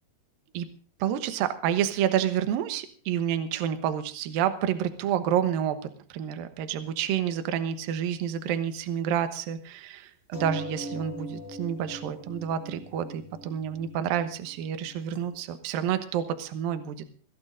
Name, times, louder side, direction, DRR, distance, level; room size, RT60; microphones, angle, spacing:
voice 1, 1.0-5.8 6.1-17.0, right 9 dB, 70° right, 9 dB, 2.4 m, -29 dB
sound 1, 10.3-15.3, equal, 20° right, 2.9 m, -41 dB
24.0 x 16.0 x 2.6 m, 0.43 s
omnidirectional pair, 5.1 m